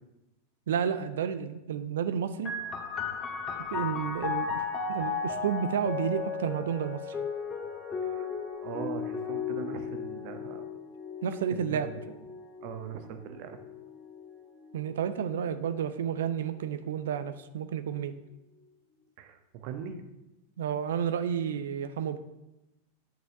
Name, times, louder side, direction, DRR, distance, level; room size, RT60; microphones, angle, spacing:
voice 1, 0.7-2.5 3.7-4.6 4.9-7.2 11.2-11.9 14.7-18.2 20.6-22.2, right 8 dB, 60° right, 11 dB, 0.6 m, -31 dB
sound 1, 2.5-15.7 16.6-17.3, left 5 dB, 20° left, 1.6 m, -36 dB
voice 2, 8.6-10.6 11.7-12.0 12.6-13.6 19.2-20.0, right 8 dB, 45° right, 7 dB, 1.2 m, -40 dB
9.5 x 6.4 x 6.4 m, 0.96 s
figure-of-eight pair, 90°, 0 cm